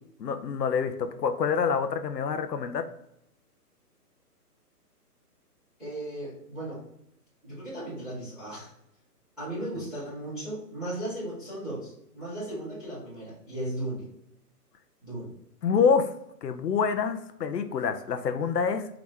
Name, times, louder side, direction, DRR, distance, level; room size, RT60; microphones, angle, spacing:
voice 1, 0.2-2.8 15.6-16.1 16.4-18.9, left 6 dB, 90° left, 8 dB, 0.8 m, -26 dB
voice 2, 5.8-6.8 7.4-8.7 9.4-14.1 15.0-15.3, right 1 dB, ahead, -21 dB, 0.9 m, -36 dB
4.9 x 2.9 x 3.5 m, 0.77 s
hypercardioid pair, 170°, 48 cm